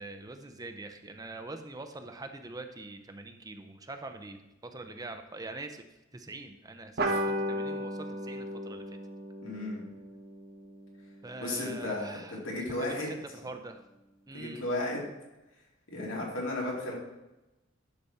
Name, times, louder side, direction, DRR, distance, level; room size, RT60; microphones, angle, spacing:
voice 1, 0.0-5.8 6.1-9.0 11.2-13.8 14.3-14.6, right 2 dB, 20° right, 6 dB, 0.6 m, -44 dB
sound 1, 7.0-11.9, equal, 55° right, 0.9 m, -35 dB
voice 2, 9.4-9.9 11.4-13.1 14.3-15.1 15.9-16.9, left 2 dB, 80° left, -3 dB, 2.7 m, -34 dB
10.0 x 6.0 x 4.2 m, 0.99 s
head